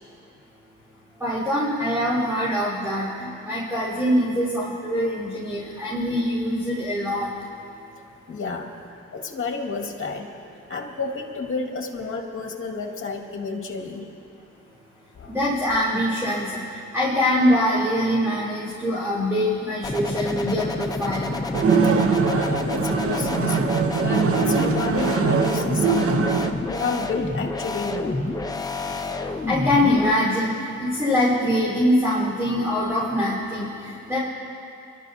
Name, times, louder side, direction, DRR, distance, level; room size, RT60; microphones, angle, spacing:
voice 1, 1.2-7.3 15.3-21.4 29.5-30.5 30.8-34.2, left 1 dB, 10° right, -9 dB, 4.3 m, -23 dB
voice 2, 8.3-8.7 9.1-10.3 10.7-14.1 15.2-15.4 21.8-22.0 22.3-23.6 24.0-26.4 26.6-28.2, left 4 dB, 45° left, 1 dB, 2.1 m, -30 dB
sound 1, 19.8-30.1, left 2 dB, 10° left, 0.8 m, -29 dB
sound 2, 21.5-26.5, right 5 dB, 50° right, 0.9 m, -22 dB
27.5 x 12.5 x 2.8 m, 2.7 s
cardioid pair, 90°, 30 cm